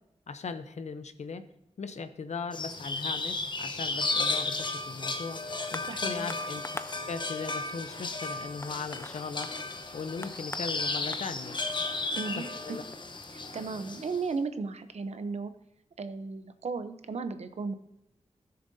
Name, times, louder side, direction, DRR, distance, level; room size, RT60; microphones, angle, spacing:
voice 1, 0.3-1.4 1.8-6.6 7.1-9.5 9.9-11.6 12.4-12.8, left 5 dB, 75° left, 10 dB, 0.7 m, -38 dB
sound 1, 2.5-14.2, left 3 dB, 40° left, 0.9 m, -34 dB
sound 2, 5.6-14.4 15.2-15.3, left 2 dB, 20° left, 0.4 m, -47 dB
voice 2, 5.8-6.3 12.1-12.8 13.3-15.5 16.0-17.7, right 4 dB, 70° right, 10 dB, 0.7 m, -35 dB
15.5 x 6.7 x 2.7 m, 0.87 s
wide cardioid pair, 110°, 12 cm